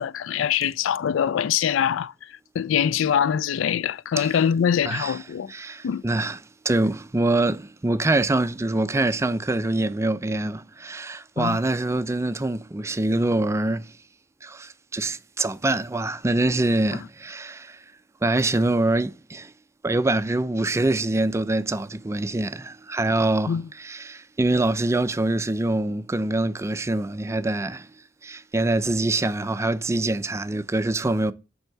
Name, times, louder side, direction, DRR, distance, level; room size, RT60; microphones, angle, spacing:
voice 1, 0.0-5.5 5.8-6.0 11.4-11.6 23.5-23.7, left 8 dB, 70° left, 0.3 m, -24 dB
voice 2, 4.9-5.2 5.5-6.4 6.6-13.9 14.4-17.8 18.2-19.5 19.8-27.9 28.2-31.3, right 2 dB, 15° right, 0.4 m, -24 dB
8.9 x 3.6 x 6.6 m
head